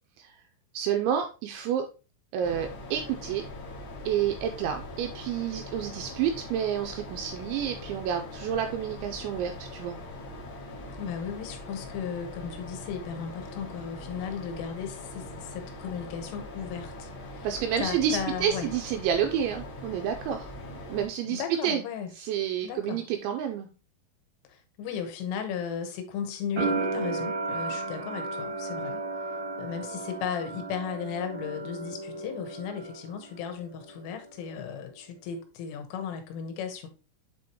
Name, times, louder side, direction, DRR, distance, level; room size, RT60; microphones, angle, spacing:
voice 1, 0.7-1.9 2.3-3.4 4.1-10.0 17.4-20.5 20.8-21.8 22.2-23.7, right 9 dB, 90° right, 2.7 m, -29 dB
sound 1, 2.4-21.1, left 1 dB, 45° left, 2.6 m, -42 dB
voice 2, 11.0-17.5 17.8-18.7 21.2-22.1 22.6-23.0 24.5-29.0 29.6-36.9, left 7 dB, 80° left, 3.5 m, -36 dB
sound 2, 26.6-33.4 33.6-34.5, right 3 dB, 70° right, 1.9 m, -34 dB
8.5 x 4.5 x 2.9 m
omnidirectional pair, 5.9 m